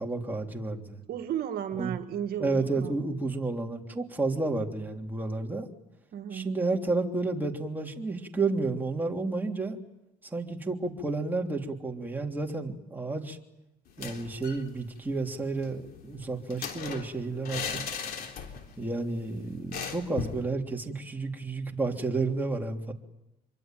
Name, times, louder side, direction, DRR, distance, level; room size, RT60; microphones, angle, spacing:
voice 1, 0.0-1.0 1.7-2.0 2.4-5.7 6.3-9.8 10.2-13.4 14.0-17.8 18.8-22.9, right 3 dB, 10° right, 0 dB, 3.2 m, -31 dB
voice 2, 1.1-2.9 6.1-6.6, right 10 dB, 65° right, 8 dB, 1.7 m, -34 dB
sound 1, 13.9-14.7 15.0-15.1 15.3-18.8 19.1-19.2 19.7-20.5, left 6 dB, 65° left, 3.6 m, -38 dB
26.0 x 23.5 x 9.2 m, 0.91 s
cardioid pair, 110°, 17 cm